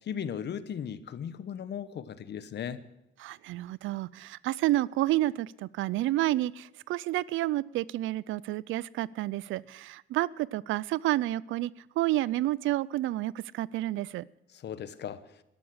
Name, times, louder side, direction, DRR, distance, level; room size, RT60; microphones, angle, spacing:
voice 1, 0.1-2.8 14.5-15.2, left 8 dB, 60° left, 14 dB, 1.0 m, -37 dB
voice 2, 3.2-11.7 12.0-14.2, right 16 dB, 80° right, 22 dB, 0.4 m, -30 dB
13.0 x 12.0 x 6.3 m, 0.90 s
cardioid pair, 90°, 20 cm